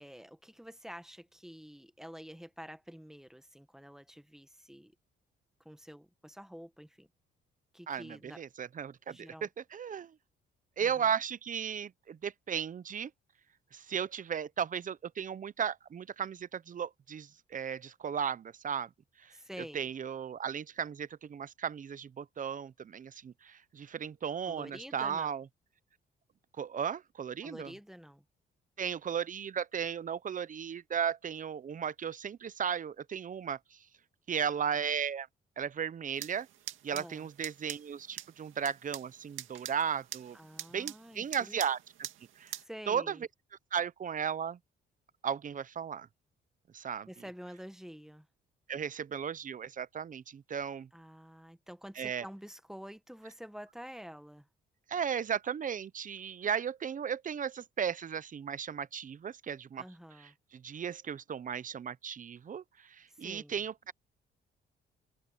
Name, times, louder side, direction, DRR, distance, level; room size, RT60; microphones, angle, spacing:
voice 1, 0.0-4.9 5.6-7.1 7.7-8.4 9.1-9.5 10.8-11.1 19.3-19.9 24.5-25.4 27.4-28.2 36.9-37.3 40.3-41.6 42.5-43.2 47.1-48.3 50.9-54.5 59.8-60.3 63.1-63.6, equal, ahead, 1.3 m, -48 dB
voice 2, 7.9-10.2 10.8-13.1 13.7-18.9 19.2-19.4 19.7-25.4 26.6-27.7 28.8-33.9 34.3-35.3 35.6-36.5 36.8-40.4 40.7-41.8 42.4-42.6 42.9-43.2 43.7-44.6 45.2-46.1 46.7-47.1 48.7-50.9 52.0-52.2 54.9-59.8 60.2-63.9, right 7 dB, 40° right, 0.7 m, -35 dB
sound 1, 36.2-42.6, right 12 dB, 80° right, 2.0 m, -45 dB
cardioid pair, 90°, 20 cm